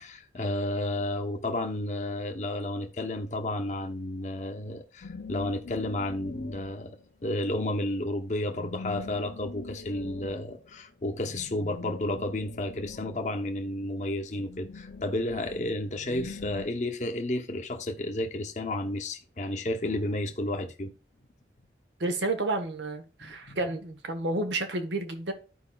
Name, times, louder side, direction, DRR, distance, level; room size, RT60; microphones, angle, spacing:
voice 1, 0.0-7.0 7.2-20.9 23.2-23.7, left 1 dB, 40° left, 0.8 m, -32 dB
sound 1, 5.0-7.1 8.4-13.7 14.3-16.7, left 4 dB, 85° left, 0.5 m, -43 dB
voice 2, 22.0-25.3, right 2 dB, 80° right, 1.1 m, -30 dB
13.5 x 4.9 x 2.3 m
head